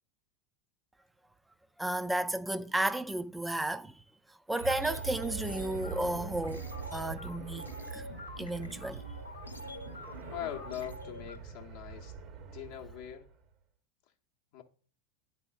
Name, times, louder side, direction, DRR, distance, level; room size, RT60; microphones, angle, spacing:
voice 1, 1.8-3.9 4.5-7.6 7.9-8.1 8.4-9.0, right 1 dB, 5° right, 0.3 m, -33 dB
sound 1, 4.5-11.4, left 1 dB, 85° left, 0.8 m, -46 dB
sound 2, 4.6-13.4, right 6 dB, 40° right, 0.7 m, -43 dB
voice 2, 10.3-12.2 12.5-13.3 14.5-14.6, left 11 dB, 55° left, 0.7 m, -41 dB
10.5 x 4.2 x 2.3 m
figure-of-eight pair, 85°, 0 cm